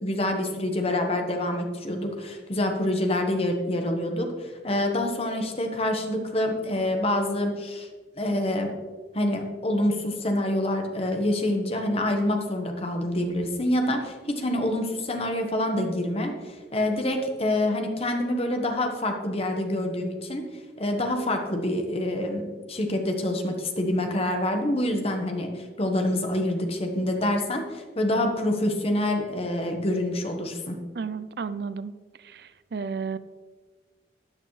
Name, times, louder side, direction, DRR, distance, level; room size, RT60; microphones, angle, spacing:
voice 1, 0.0-7.9 8.2-8.7 9.1-20.4 20.8-30.8, left 1 dB, 35° left, 4 dB, 1.2 m, -26 dB
voice 2, 30.9-31.9 32.2-33.2, right 5 dB, 65° right, 14 dB, 0.5 m, -33 dB
13.0 x 8.9 x 3.2 m, 1.4 s
head